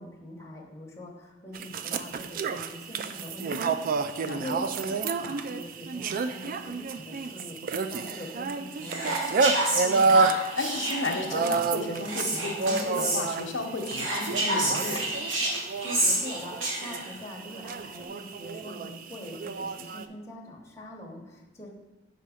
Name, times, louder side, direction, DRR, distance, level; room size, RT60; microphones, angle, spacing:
voice 1, 0.0-3.8 4.1-9.5 15.5-21.7, left 1 dB, 15° left, -2 dB, 0.9 m, -43 dB
sound 1, 1.5-20.1, right 4 dB, 45° right, 0.3 m, -30 dB
Whispering, 8.8-11.3 12.0-13.2 13.8-17.1, right 1 dB, 85° right, 1.4 m, -29 dB
voice 2, 9.8-10.3 10.6-15.1, left 3 dB, 80° left, 3 dB, 0.8 m, -33 dB
5.6 x 3.9 x 4.9 m, 1.1 s
head